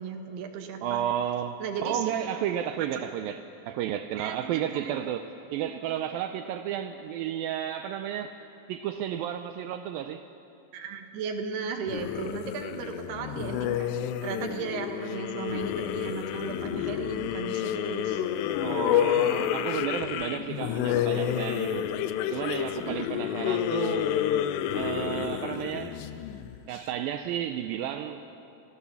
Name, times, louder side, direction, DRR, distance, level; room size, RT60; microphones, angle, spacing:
voice 1, 0.0-1.0 1.6-2.0 2.8-2.9 4.2-4.9 5.8-6.0 10.7-18.2 22.8-23.3, right 6 dB, 75° right, 4 dB, 3.4 m, -36 dB
voice 2, 0.8-3.4 3.7-8.3 8.7-10.2 18.6-21.9 22.3-24.2 24.7-26.0 26.7-28.2, right 10 dB, 90° right, 8 dB, 2.0 m, -32 dB
sound 1, 11.9-26.8, left 11 dB, 85° left, 2.9 m, -29 dB
25.0 x 16.0 x 7.1 m, 2.8 s
omnidirectional pair, 4.8 m